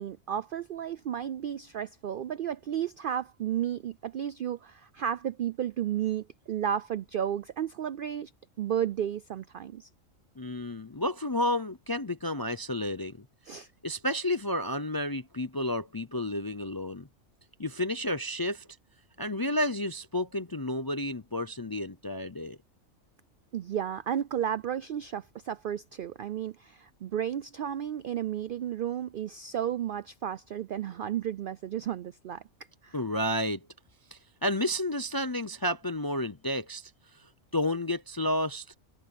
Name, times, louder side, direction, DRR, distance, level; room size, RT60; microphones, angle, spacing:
voice 1, 0.0-8.3 8.6-9.9 13.5-13.7 23.5-32.4 32.8-33.0, right 9 dB, 65° right, 0.5 m, -33 dB
voice 2, 10.4-13.2 13.8-17.1 17.6-18.7 19.2-22.6 32.9-33.7 34.1-38.7, left 1 dB, 30° left, 0.4 m, -31 dB
omnidirectional pair, 1.4 m